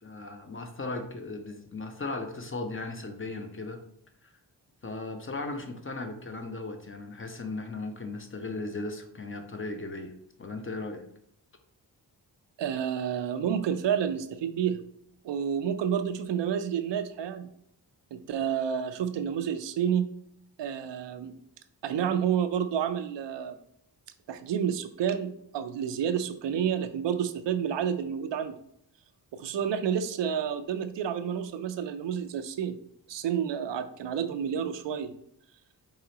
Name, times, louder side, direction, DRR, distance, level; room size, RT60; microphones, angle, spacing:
voice 1, 0.0-3.8 4.2-4.3 4.8-10.1 10.4-11.0, left 3 dB, 30° left, 6 dB, 0.8 m, -37 dB
voice 2, 12.6-14.8 15.2-17.5 18.1-20.1 20.6-21.3 21.8-23.6 24.3-28.6 29.3-32.8 33.1-35.1, right 8 dB, 80° right, 10 dB, 0.5 m, -29 dB
4.8 x 3.1 x 2.8 m, 0.71 s
cardioid pair, 50°, 43 cm